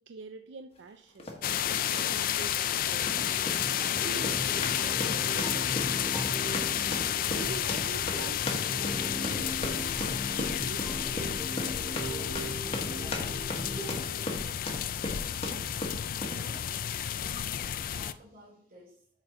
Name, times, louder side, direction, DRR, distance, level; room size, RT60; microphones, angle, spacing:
voice 1, 0.0-1.3 1.7-3.3 3.8-6.1 7.0-11.0, right 5 dB, 85° right, 7 dB, 0.4 m, -46 dB
sound 1, 1.2-1.4 1.9-2.2 2.9-16.4, left 1 dB, 35° left, 1.2 m, -38 dB
sound 2, 1.4-18.1, left 10 dB, 50° left, 0.3 m, -31 dB
sound 3, 3.2-14.2, equal, ahead, 0.7 m, -39 dB
voice 2, 16.1-16.7 17.1-19.2, equal, 55° right, -3 dB, 3.0 m, -51 dB
7.2 x 4.2 x 4.9 m, 0.63 s
head